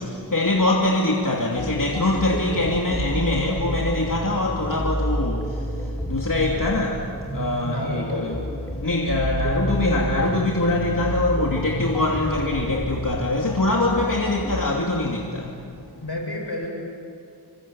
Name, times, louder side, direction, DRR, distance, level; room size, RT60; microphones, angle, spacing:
voice 1, 0.0-8.4 8.8-15.7, left 2 dB, 50° left, -2 dB, 2.9 m, -23 dB
sound 1, 1.5-14.7, equal, 5° left, 4.3 m, -30 dB
voice 2, 7.6-8.3 16.0-16.7, left 1 dB, 80° left, 0 dB, 7.5 m, -30 dB
27.5 x 24.0 x 8.9 m, 2.4 s
wide cardioid pair, 45°, 40 cm